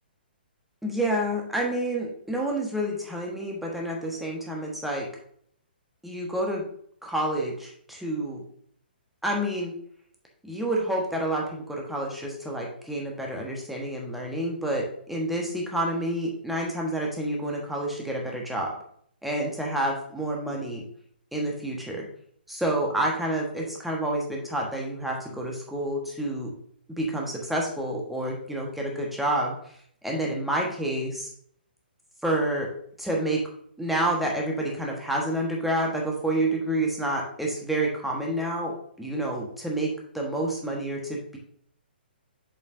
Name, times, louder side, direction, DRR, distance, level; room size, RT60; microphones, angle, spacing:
voice 1, 0.8-5.1 6.0-6.6 7.0-8.4 9.2-9.7 10.4-18.7 19.2-20.8 21.3-22.1 22.5-26.5 26.9-29.5 30.0-31.3 32.2-32.7 33.0-33.4 33.8-41.4, right 1 dB, ahead, -1 dB, 1.3 m, -29 dB
6.9 x 5.4 x 2.6 m, 0.63 s
figure-of-eight pair, 125°, 6 cm